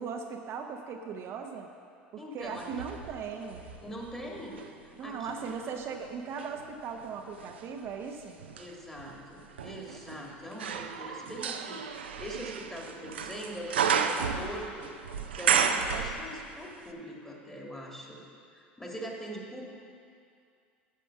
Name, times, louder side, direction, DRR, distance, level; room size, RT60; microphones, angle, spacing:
voice 1, 0.0-1.7 2.1-3.6 5.0-8.3 9.9-10.0, right 6 dB, 50° right, 3 dB, 0.7 m, -38 dB
voice 2, 2.2-2.9 3.8-5.3 8.6-18.2 18.5-19.6, equal, 10° left, -1 dB, 2.0 m, -42 dB
sound 1, 2.5-4.7 5.3-16.6 16.9-17.0, right 7 dB, 85° right, 0.5 m, -33 dB
9.4 x 6.2 x 5.7 m, 2.4 s
hypercardioid pair, 75°, 6 cm